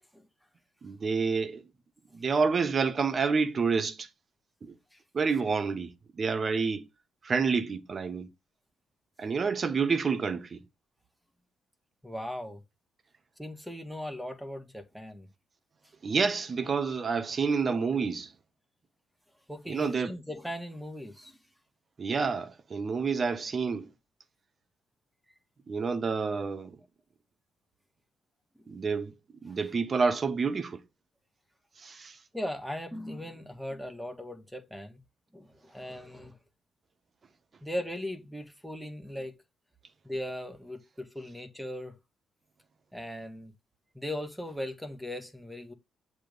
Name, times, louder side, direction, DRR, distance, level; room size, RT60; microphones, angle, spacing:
voice 1, 0.8-1.6 2.1-4.1 4.6-4.7 5.1-5.9 6.2-6.9 7.2-8.3 9.2-10.6 16.0-18.3 19.7-20.1 22.0-23.9 25.7-26.8 28.7-29.1 29.4-30.8 31.8-32.2, right 5 dB, 40° right, 1.0 m, -28 dB
voice 2, 12.0-12.6 13.4-15.3 19.5-21.4 28.6-28.7 29.5-29.6 32.3-35.0 35.3-36.4 37.6-39.4 40.0-42.0 42.9-43.5 43.9-45.7, left 1 dB, ahead, 1.3 m, -38 dB
7.7 x 3.1 x 5.2 m
cardioid pair, 90°, 0 cm